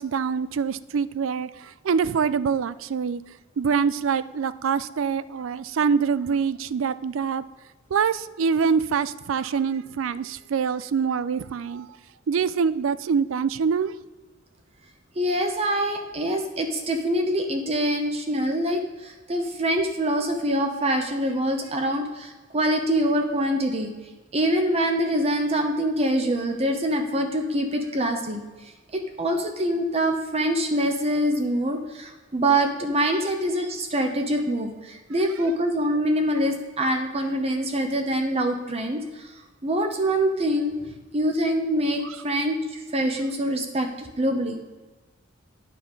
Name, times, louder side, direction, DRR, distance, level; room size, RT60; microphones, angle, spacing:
voice 1, 0.0-3.2 3.6-7.4 7.9-12.0 12.3-13.9 33.1-33.2, right 6 dB, 75° right, 16 dB, 0.4 m, -25 dB
voice 2, 15.2-23.9 24.3-39.3 39.6-40.8 41.1-44.6, right 1 dB, 30° right, 4 dB, 0.8 m, -25 dB
10.0 x 5.6 x 5.2 m, 1.2 s
head